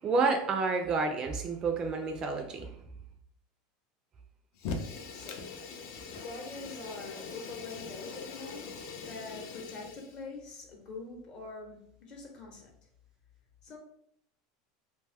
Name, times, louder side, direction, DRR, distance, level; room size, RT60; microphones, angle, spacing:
voice 1, 0.0-2.7, right 4 dB, 25° right, 4 dB, 0.3 m, -29 dB
Fire, 4.6-10.2, left 4 dB, 60° left, 0.4 m, -41 dB
voice 2, 4.8-5.4 5.9-8.7 9.0-12.7 13.6-13.8, left 3 dB, 35° left, 1 dB, 0.8 m, -44 dB
2.7 x 2.2 x 3.3 m, 0.71 s
supercardioid pair, 150°, 3 cm